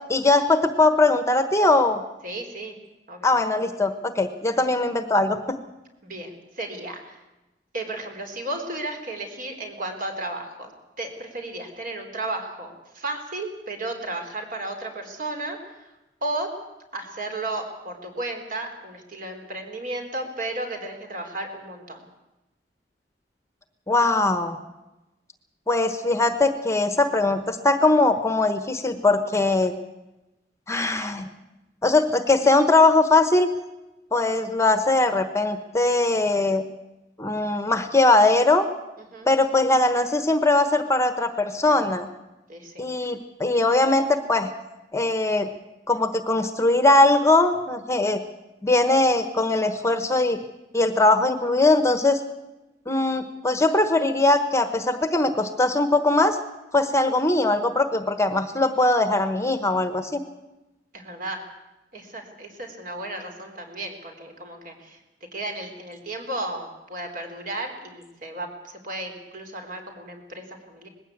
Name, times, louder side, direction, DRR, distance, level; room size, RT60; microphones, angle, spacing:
voice 1, 0.1-2.0 3.2-5.6 23.9-24.6 25.7-29.7 30.7-31.3 31.8-33.5 34.1-36.6 37.2-38.6 39.3-42.1 42.8-44.5 44.9-45.5 45.9-48.2 48.6-50.4 50.7-52.2 52.9-56.4 56.7-60.2, left 2 dB, 15° left, 9 dB, 1.1 m, -20 dB
voice 2, 2.2-2.7 3.1-3.3 6.0-7.2 7.7-10.7 11.0-15.9 16.2-16.5 16.9-22.0 39.1-39.3 42.5-42.8 60.9-61.4 61.9-65.0 65.3-70.9, right 2 dB, 50° right, 4 dB, 4.0 m, -34 dB
20.0 x 16.0 x 8.7 m, 1.0 s
head